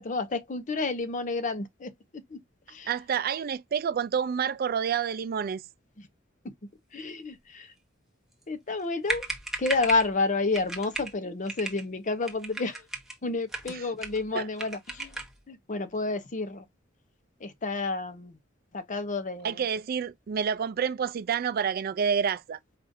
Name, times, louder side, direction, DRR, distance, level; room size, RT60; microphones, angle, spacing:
voice 1, 0.0-1.9 2.3-2.4 2.7-2.9 6.4-6.5 6.9-7.7 8.5-9.3 9.6-12.8 13.2-15.2 15.5-16.7 17.4-18.4 18.7-19.6, left 3 dB, 40° left, 0.7 m, -30 dB
voice 2, 2.9-5.6 13.7-13.8 14.3-14.5 19.4-22.6, right 7 dB, 50° right, 0.4 m, -28 dB
sound 1, 8.8-8.9 9.0-10.1 10.5-11.1 11.5-11.8 12.2-13.2 13.5-14.3 14.6-15.4, right 2 dB, ahead, 1.0 m, -35 dB
4.9 x 2.4 x 2.6 m
head